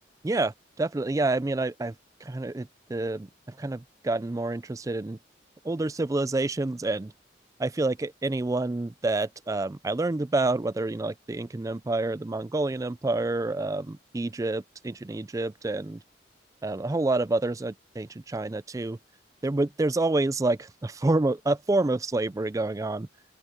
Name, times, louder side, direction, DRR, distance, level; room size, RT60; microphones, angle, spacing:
voice 1, 0.2-1.9 2.2-5.2 5.6-7.1 7.6-16.0 16.6-19.0 19.4-23.1, right 2 dB, 20° right, 0.4 m, -28 dB
open air
head